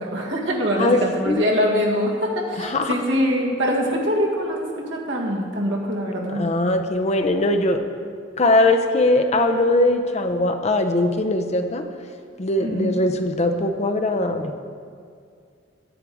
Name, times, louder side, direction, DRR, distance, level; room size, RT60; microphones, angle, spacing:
voice 1, 0.0-6.4 12.6-13.0, equal, 75° right, -2 dB, 1.8 m, -23 dB
voice 2, 2.6-2.9 6.4-7.8 8.4-11.8 12.4-14.6, left 2 dB, 35° left, 6 dB, 0.6 m, -20 dB
10.0 x 9.3 x 4.8 m, 2.2 s
head